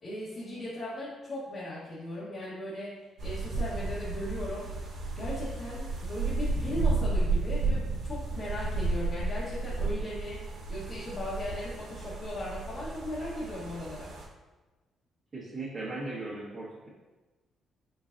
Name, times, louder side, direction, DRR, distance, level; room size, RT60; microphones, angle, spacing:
voice 1, 0.0-2.9 3.2-4.7 5.2-10.4 10.7-14.1, left 1 dB, 50° left, -8 dB, 1.2 m, -38 dB
sound 1, 3.2-14.2, right 3 dB, 80° right, 0.9 m, -32 dB
voice 2, 15.3-16.9, right 2 dB, 40° right, -10 dB, 1.3 m, -38 dB
4.5 x 4.0 x 2.6 m, 1.2 s
cardioid pair, 90°, 0 cm